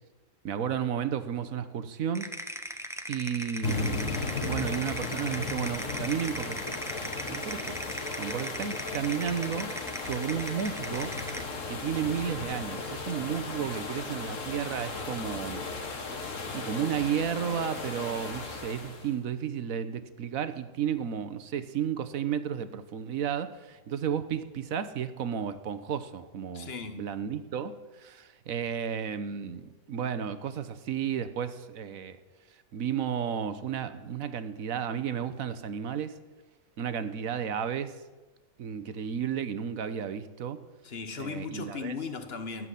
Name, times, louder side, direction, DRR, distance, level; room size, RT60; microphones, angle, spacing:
voice 1, 0.4-2.3 3.1-6.8 7.3-7.8 8.2-9.7 10.0-11.1 11.7-15.6 16.2-16.3 16.5-32.2 32.7-36.2 36.8-38.0 38.6-40.6 41.2-41.9, right 8 dB, 80° right, 1.4 m, -33 dB
sound 1, 2.1-11.5, equal, ahead, 0.9 m, -38 dB
sound 2, 3.6-19.1, left 3 dB, 65° left, 2.0 m, -36 dB
voice 2, 26.5-27.0 40.8-42.7, left 4 dB, 45° left, 1.5 m, -37 dB
15.5 x 7.6 x 10.0 m
omnidirectional pair, 1.4 m